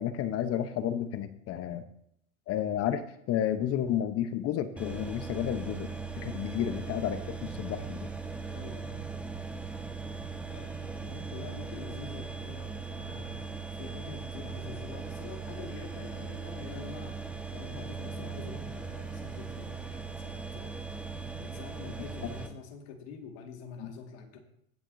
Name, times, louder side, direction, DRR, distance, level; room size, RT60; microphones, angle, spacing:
voice 1, 0.0-1.8 2.5-5.9 6.2-8.0 23.8-23.9, left 10 dB, 40° left, 11 dB, 0.9 m, -31 dB
sound 1, 4.8-22.5, right 5 dB, 5° right, 1.3 m, -39 dB
voice 2, 8.4-9.1 10.5-20.9 21.4-24.4, left 5 dB, 60° left, 3 dB, 1.9 m, -46 dB
16.5 x 7.2 x 2.7 m, 0.71 s
hypercardioid pair, 100°, 38 cm